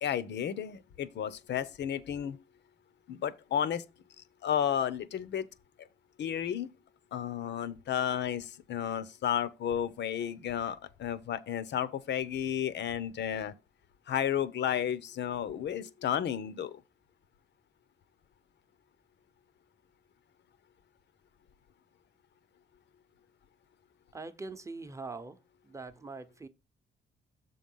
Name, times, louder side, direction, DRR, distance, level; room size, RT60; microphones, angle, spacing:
voice 1, 0.0-2.4 3.1-3.8 4.4-5.4 5.8-5.9 6.2-6.7 7.1-13.5 14.1-16.8, left 9 dB, 65° left, 0.7 m, -32 dB
voice 2, 24.1-25.4 25.6-26.5, right 3 dB, 15° right, 0.8 m, -42 dB
6.9 x 3.9 x 5.5 m
cardioid pair, 90°, 20 cm